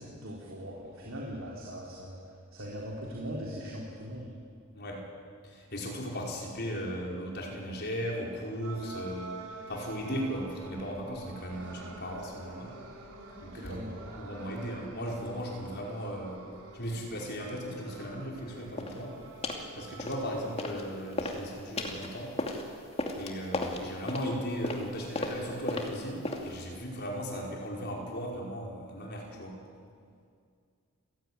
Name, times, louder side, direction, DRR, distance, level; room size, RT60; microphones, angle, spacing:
voice 1, 0.0-2.2 2.5-4.3 13.5-14.1, equal, 60° right, -3 dB, 3.9 m, -40 dB
voice 2, 4.7-5.1 5.4-9.4 9.7-12.7 13.4-13.9 14.2-16.5 16.7-19.2 19.8-22.4 23.2-29.6, equal, 45° left, -1 dB, 5.2 m, -37 dB
sound 1, 8.6-22.7, right 2 dB, 80° right, 4.1 m, -48 dB
sound 2, 18.8-19.0 19.4-19.7 20.0-20.8 21.1-26.7, left 2 dB, 30° left, 2.6 m, -35 dB
29.5 x 16.5 x 9.8 m, 2.2 s
head